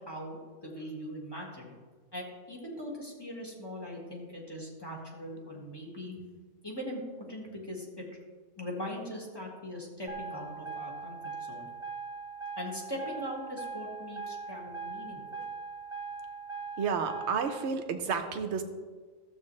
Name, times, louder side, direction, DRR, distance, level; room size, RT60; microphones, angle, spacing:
voice 1, 0.0-1.7 2.1-6.3 6.6-8.0 8.6-11.7 12.6-15.4, equal, 20° left, -2 dB, 1.7 m, -41 dB
sound 1, 10.1-17.7, right 5 dB, 25° right, 0.8 m, -41 dB
voice 2, 16.8-18.6, right 6 dB, 60° right, 7 dB, 1.0 m, -31 dB
12.5 x 7.9 x 3.2 m, 1.5 s
omnidirectional pair, 1.4 m